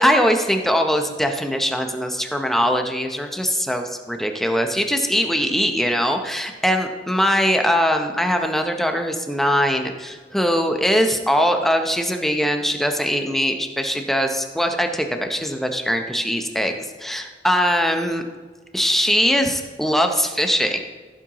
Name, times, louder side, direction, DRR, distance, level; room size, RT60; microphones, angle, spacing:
voice 1, 0.0-18.2 18.7-20.8, equal, ahead, 4 dB, 0.7 m, -21 dB
15.0 x 7.5 x 3.0 m, 1.4 s
head